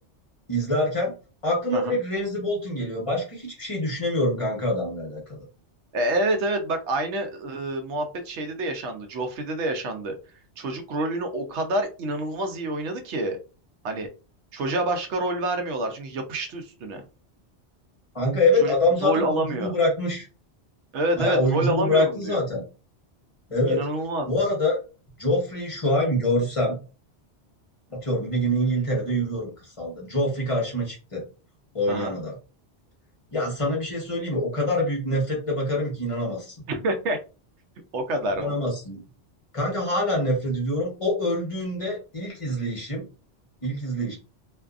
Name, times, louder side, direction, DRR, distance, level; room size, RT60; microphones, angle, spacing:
voice 1, 0.5-1.1 1.4-5.2 18.1-20.2 21.1-22.6 23.5-23.8 24.2-24.8 25.2-26.8 27.9-29.5 29.8-31.2 31.7-32.3 33.3-36.6 38.4-39.0 39.5-43.0 43.6-44.2, left 1 dB, 30° left, -2 dB, 0.9 m, -25 dB
voice 2, 5.9-10.2 10.6-13.4 13.8-14.1 14.5-17.0 18.6-18.7 19.0-19.8 20.9-22.4 23.7-24.3 31.9-32.2 36.7-37.2 37.9-38.6, right 1 dB, 80° right, 5 dB, 0.9 m, -27 dB
2.6 x 2.4 x 2.3 m, 0.34 s
omnidirectional pair, 1.2 m